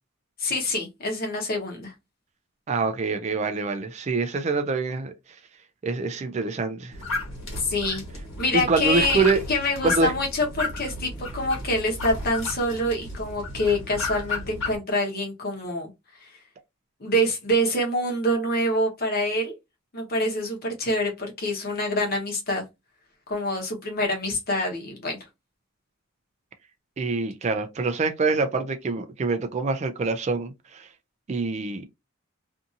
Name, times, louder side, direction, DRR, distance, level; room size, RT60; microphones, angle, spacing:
voice 1, 0.4-1.9 7.6-8.0 8.4-15.9 16.2-16.3 17.0-19.5 19.9-22.6 23.3-25.2, left 1 dB, 45° left, 0.9 m, -26 dB
voice 2, 2.7-5.1 5.8-6.9 8.5-9.4 9.8-10.1 27.0-30.9 31.3-31.8, right 3 dB, 30° right, 0.3 m, -25 dB
sound 1, 6.9-14.8, left 2 dB, 65° left, 1.4 m, -33 dB
2.6 x 2.6 x 2.4 m
head